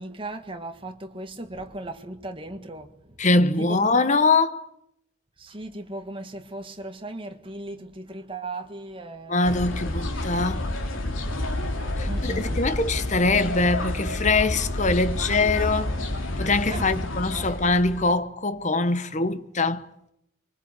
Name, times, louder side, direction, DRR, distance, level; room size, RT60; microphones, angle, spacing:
voice 1, 0.0-2.9 3.6-3.8 5.4-9.4 9.8-9.9 12.1-12.6 16.7-16.9 17.3-17.5, right 2 dB, 25° right, 1.8 m, -37 dB
voice 2, 3.2-4.7 9.3-10.6 12.0-15.9 16.4-19.8, left 3 dB, 35° left, 1.1 m, -23 dB
sound 1, 9.4-18.1, left 1 dB, 80° left, 3.0 m, -29 dB
25.5 x 23.5 x 8.4 m
head